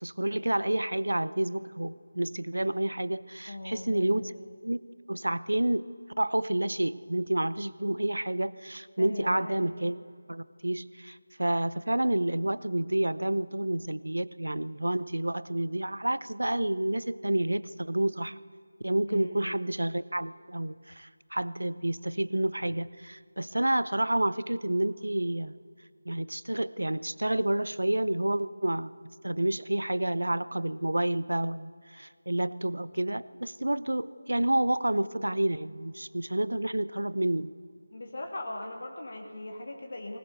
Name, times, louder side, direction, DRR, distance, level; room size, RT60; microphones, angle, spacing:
voice 1, 0.0-4.3 4.6-4.8 5.1-5.9 6.2-10.0 10.3-18.4 18.8-25.5 26.1-28.9 29.2-37.5, right 1 dB, 75° right, 17 dB, 0.8 m, -29 dB
voice 2, 3.5-4.3 9.0-9.7 19.1-19.6 37.9-40.2, left 1 dB, 50° left, 2 dB, 2.2 m, -39 dB
19.5 x 19.5 x 8.1 m, 2.3 s
figure-of-eight pair, 165°, 0 cm